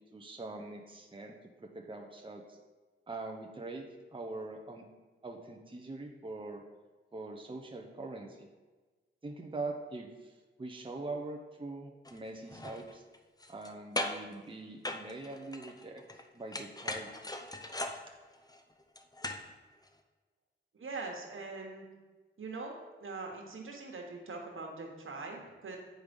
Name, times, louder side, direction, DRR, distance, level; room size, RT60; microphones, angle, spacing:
voice 1, 0.1-2.6 3.1-3.8 4.1-4.8 5.2-6.6 7.1-8.5 9.2-10.1 10.6-13.0 13.5-16.0 16.3-17.1, right 2 dB, 25° right, 2 dB, 0.8 m, -43 dB
sound 1, 12.0-12.2 12.5-13.7 13.9-14.3 14.8-16.2 16.5-19.5 19.9-20.0, left 1 dB, 20° left, 0.7 m, -39 dB
voice 2, 20.7-21.8 22.4-25.8, right 3 dB, 75° right, 1 dB, 1.5 m, -42 dB
7.9 x 5.1 x 5.3 m, 1.3 s
wide cardioid pair, 80°, 21 cm